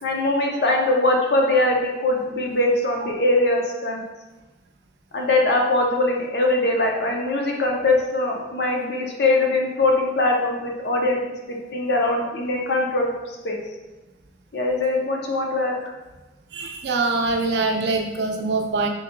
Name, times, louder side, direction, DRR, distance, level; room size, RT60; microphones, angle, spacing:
voice 1, 0.0-4.0 5.1-11.2 11.5-13.6 14.5-15.9, left 2 dB, 70° left, 0 dB, 0.7 m, -22 dB
voice 2, 16.5-18.9, right 3 dB, 75° right, 3 dB, 0.5 m, -23 dB
4.0 x 3.8 x 2.2 m, 1.1 s
head